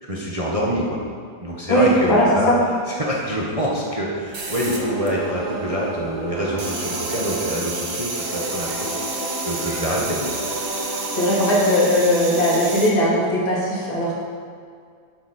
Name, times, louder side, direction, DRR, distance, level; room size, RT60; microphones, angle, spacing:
voice 1, 0.0-1.0 1.4-2.5 2.9-10.3, equal, 20° right, -4 dB, 1.2 m, -26 dB
voice 2, 1.7-2.5 11.1-14.2, equal, 80° left, -6 dB, 3.4 m, -18 dB
sound 1, 4.3-5.6 5.8-12.9, right 3 dB, 40° right, 1.4 m, -31 dB
sound 2, 4.3-13.2, right 2 dB, 90° right, 2.2 m, -32 dB
11.5 x 8.4 x 4.4 m, 2.1 s
omnidirectional pair, 2.1 m